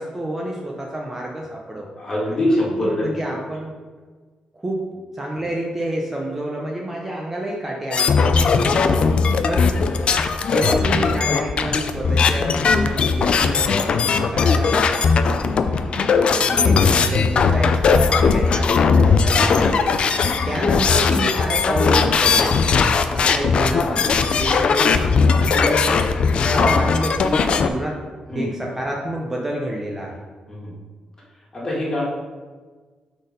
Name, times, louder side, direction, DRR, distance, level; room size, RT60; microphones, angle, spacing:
voice 1, 0.0-1.9 2.4-2.6 3.0-3.7 4.6-4.9 5.1-8.7 9.4-9.7 10.5-15.5 15.9-19.9 20.2-22.6 23.1-25.1 25.5-26.1 26.4-28.0 28.3-30.2, right 1 dB, 15° right, -2 dB, 0.7 m, -28 dB
voice 2, 2.0-3.3 8.2-8.9 9.9-10.0 28.3-28.5 30.5-30.7 31.5-32.0, left 1 dB, 25° left, -5 dB, 1.9 m, -24 dB
sound 1, 7.9-27.7, left 5 dB, 45° left, 0.4 m, -18 dB
6.1 x 4.1 x 5.2 m, 1.4 s
wide cardioid pair, 155°, 2 cm